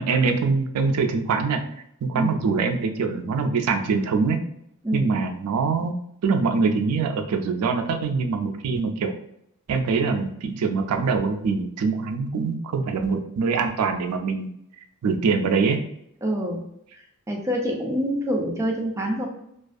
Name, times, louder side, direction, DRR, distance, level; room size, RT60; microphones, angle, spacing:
voice 1, 0.0-1.6 2.0-4.4 4.9-5.9 6.2-9.1 9.7-14.5 15.0-15.8, right 4 dB, 85° right, 5 dB, 0.4 m, -23 dB
voice 2, 16.2-16.6 17.3-19.3, equal, 15° right, 0 dB, 0.4 m, -26 dB
2.4 x 2.3 x 2.5 m, 0.75 s
head